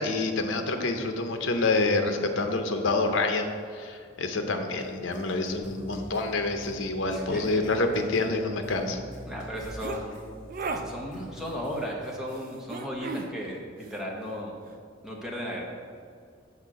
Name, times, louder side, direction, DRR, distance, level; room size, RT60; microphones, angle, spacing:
voice 1, 0.0-9.0, left 3 dB, 80° left, 6 dB, 0.7 m, -27 dB
sound 1, 4.8-11.8, equal, 40° left, 1.8 m, -46 dB
voice 2, 7.1-7.6 9.3-10.2 10.8-14.6 15.0-15.6, equal, 5° right, -3 dB, 1.0 m, -35 dB
sound 2, 9.6-10.0 10.5-10.8 12.7-13.3, right 4 dB, 45° right, 0.4 m, -34 dB
5.8 x 4.3 x 6.2 m, 2.2 s
head